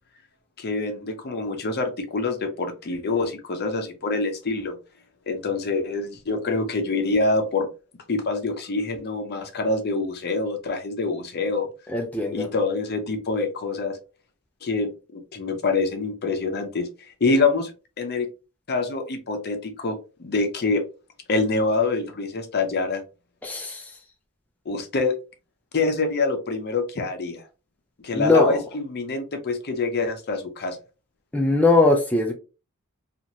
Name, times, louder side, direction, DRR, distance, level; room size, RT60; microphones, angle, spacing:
voice 1, 0.6-4.8 5.3-7.7 8.1-11.7 12.3-14.0 14.6-16.9 17.2-17.7 18.0-18.3 18.7-20.8 21.3-23.0 24.7-25.2 25.7-27.4 28.0-30.8, left 3 dB, 50° left, 6 dB, 0.6 m, -25 dB
voice 2, 11.9-12.5 23.4-23.8 28.1-28.6 31.3-32.3, left 3 dB, 5° left, 1 dB, 0.3 m, -20 dB
2.9 x 2.4 x 2.6 m, 0.32 s
head